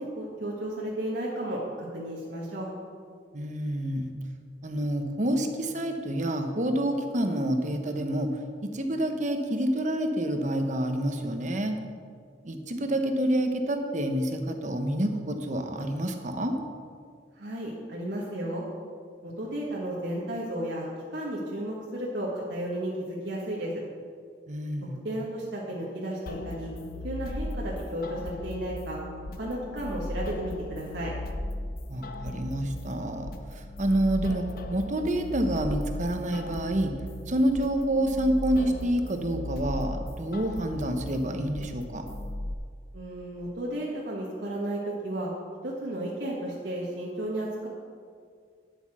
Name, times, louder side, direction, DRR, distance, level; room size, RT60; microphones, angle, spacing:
voice 1, 0.0-2.7 17.3-18.6 19.2-23.8 25.0-26.7 27.0-29.0 29.4-31.1 42.9-45.3 45.6-47.7, right 1 dB, 75° right, -5 dB, 1.6 m, -33 dB
voice 2, 3.3-4.1 4.6-8.3 8.7-11.8 12.4-16.6 24.5-25.0 31.9-36.9 37.3-42.1, right 1 dB, 45° right, 6 dB, 1.0 m, -28 dB
sound 1, 26.3-42.5, left 1 dB, 55° left, 0.7 m, -37 dB
9.7 x 8.2 x 6.2 m, 2.1 s
head